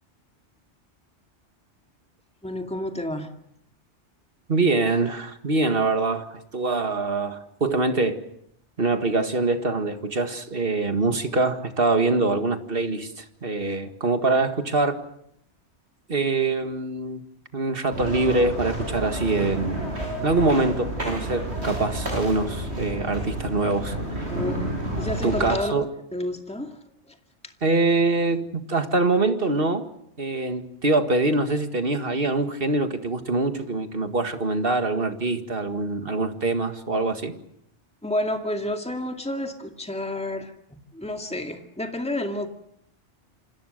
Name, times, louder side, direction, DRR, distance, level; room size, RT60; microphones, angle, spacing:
voice 1, 2.4-3.3 24.3-25.7 26.1-27.2 27.4-27.5 38.0-42.5, left 1 dB, 5° left, 2.2 m, -30 dB
voice 2, 4.5-8.2 8.8-15.0 16.1-17.2 17.5-20.0 20.2-24.2 25.2-25.8 27.6-29.9 30.2-37.3, right 3 dB, 55° right, 2.1 m, -24 dB
sound 1, 17.9-25.5, right 1 dB, 70° right, 8.3 m, -30 dB
27.5 x 26.0 x 6.6 m
omnidirectional pair, 1.2 m